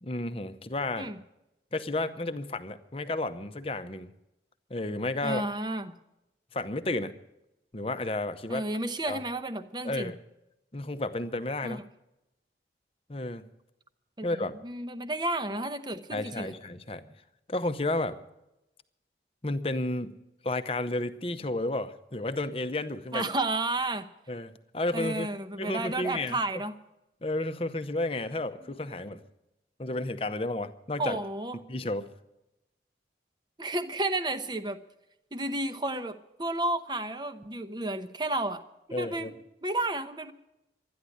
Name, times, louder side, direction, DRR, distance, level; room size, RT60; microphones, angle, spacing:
voice 1, 0.0-1.1 1.7-4.1 4.7-5.4 6.5-7.1 7.7-8.7 9.1-9.2 9.8-10.2 10.7-11.8 13.1-13.5 14.2-14.6 16.1-17.1 17.5-18.2 19.4-20.1 20.4-23.3 24.3-25.3 25.6-26.4 27.2-29.2 29.8-31.2 31.7-32.1 38.9-39.3, left 2 dB, 30° left, 10 dB, 0.8 m, -32 dB
voice 2, 5.2-5.9 8.5-10.1 11.6-11.8 14.2-16.5 23.1-24.1 24.9-26.8 31.0-31.6 33.6-34.8 35.3-38.6 39.0-39.3 39.6-40.3, right 2 dB, 25° right, 10 dB, 0.8 m, -32 dB
13.0 x 10.5 x 9.7 m, 0.91 s
head